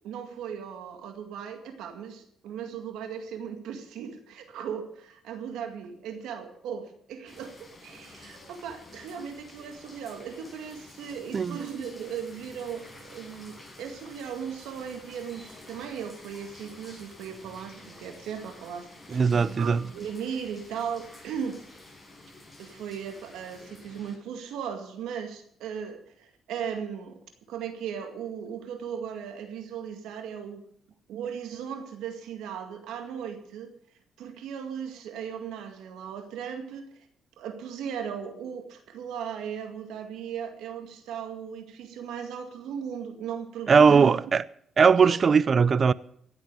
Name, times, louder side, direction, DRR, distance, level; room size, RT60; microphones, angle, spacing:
voice 1, 0.0-21.6 22.6-27.2 27.5-30.6 31.1-33.7 34.2-37.0 37.4-44.2 45.0-45.2, right 7 dB, 85° right, 2.1 m, -37 dB
sound 1, 7.3-24.2, left 2 dB, 15° left, 6.4 m, -50 dB
voice 2, 19.1-19.8 43.7-44.4 44.8-45.9, right 5 dB, 40° right, 0.5 m, -19 dB
16.5 x 8.2 x 6.8 m
cardioid pair, 90°, 0 cm